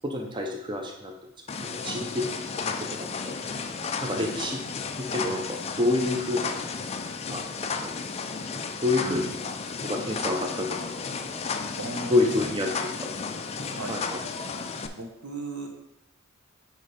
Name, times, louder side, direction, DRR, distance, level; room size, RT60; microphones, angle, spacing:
voice 1, 0.0-1.1 1.8-2.3 2.6-3.3 4.0-4.6 5.0-6.6 7.3-7.4 8.8-9.3 9.8-10.9 12.1-13.1 13.9-14.2, left 2 dB, 20° right, 1 dB, 0.6 m, -28 dB
sound 1, 1.5-14.9, left 5 dB, 30° left, 0.4 m, -33 dB
voice 2, 4.0-4.4 9.0-9.3 11.8-12.5 13.6-14.1 15.0-15.7, right 2 dB, 80° right, 3 dB, 1.2 m, -36 dB
8.4 x 3.2 x 5.1 m, 0.85 s
head